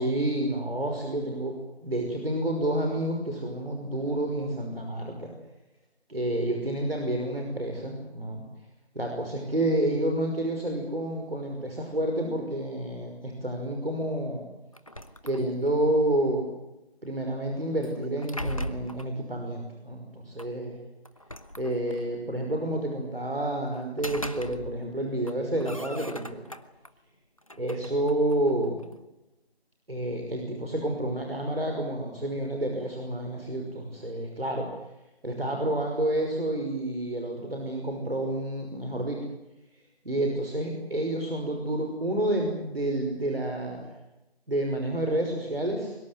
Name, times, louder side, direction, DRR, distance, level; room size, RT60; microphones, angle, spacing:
voice 1, 0.0-5.3 6.1-8.4 8.9-14.4 15.2-16.5 17.0-20.8 21.6-26.5 27.6-28.8 29.9-34.7 35.2-39.2 40.0-43.9 44.5-46.0, right 1 dB, 65° right, 2 dB, 5.7 m, -29 dB
sound 1, 14.7-15.9 17.8-19.2 20.4-20.5 21.1-22.1 23.7-25.0 25.2-26.9 27.4-29.0, equal, 35° left, 1.0 m, -39 dB
23.5 x 23.5 x 7.9 m, 0.94 s
figure-of-eight pair, 170°, 32 cm